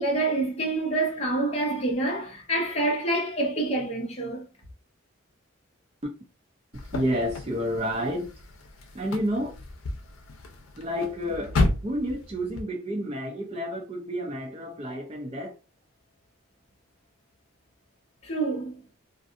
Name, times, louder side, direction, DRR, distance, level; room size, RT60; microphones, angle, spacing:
voice 1, 0.0-4.4 18.2-18.8, right 2 dB, 30° left, 0.9 m, -27 dB
sound 1, 6.7-12.6, left 2 dB, 85° left, 0.6 m, -32 dB
voice 2, 6.9-8.3 8.9-9.5 10.8-11.5 11.8-15.5, equal, 30° right, 0.5 m, -30 dB
2.5 x 2.5 x 2.4 m
head